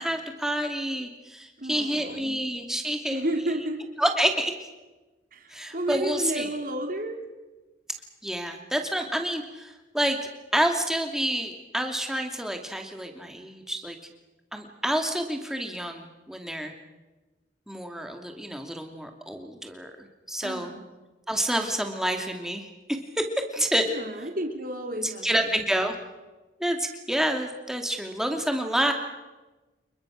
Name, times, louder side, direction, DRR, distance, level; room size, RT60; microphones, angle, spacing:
voice 1, 0.0-3.2 4.0-4.5 5.5-6.5 8.2-14.0 14.5-16.7 17.7-20.7 21.3-23.2 23.5-23.9 25.0-25.9 26.6-28.9, right 1 dB, 5° right, 4 dB, 2.6 m, -28 dB
voice 2, 1.6-2.4 3.1-3.8 5.3-7.2 20.4-20.8 23.8-25.6, right 1 dB, 50° right, 4 dB, 3.2 m, -32 dB
28.5 x 22.5 x 6.5 m, 1.2 s
head